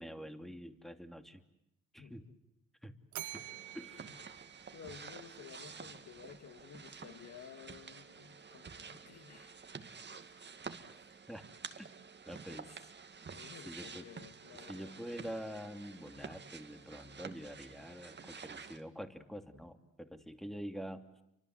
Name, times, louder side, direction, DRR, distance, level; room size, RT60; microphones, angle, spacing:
voice 1, 0.0-1.4 1.9-2.3 2.8-2.9 3.3-3.5 3.7-4.1 11.3-11.4 11.8-11.9 12.3-12.8 13.6-14.1 14.7-21.2, equal, ahead, 7 dB, 2.7 m, -46 dB
voice 2, 2.0-2.4 3.5-3.6 4.0-4.2 4.7-9.6 10.2-10.5 10.9-11.1 12.5-12.6 13.3-15.0, left 7 dB, 60° left, 8 dB, 2.4 m, -54 dB
Bell, 3.1-5.4, right 14 dB, 75° right, 1.0 m, -48 dB
sound 1, 3.2-18.8, right 5 dB, 35° right, 2.2 m, -50 dB
30.0 x 24.5 x 8.1 m, 0.83 s
cardioid pair, 90°, 30 cm